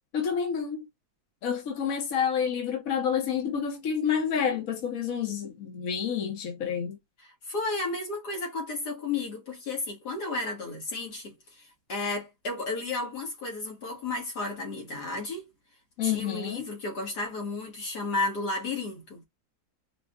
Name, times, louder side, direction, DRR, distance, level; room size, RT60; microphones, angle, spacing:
voice 1, 0.1-0.9 1.4-7.0 16.0-16.7, left 7 dB, 60° left, 1.4 m, -29 dB
voice 2, 7.2-15.5 16.0-19.2, left 3 dB, 85° left, 2.2 m, -33 dB
4.8 x 2.3 x 2.3 m
omnidirectional pair, 1.7 m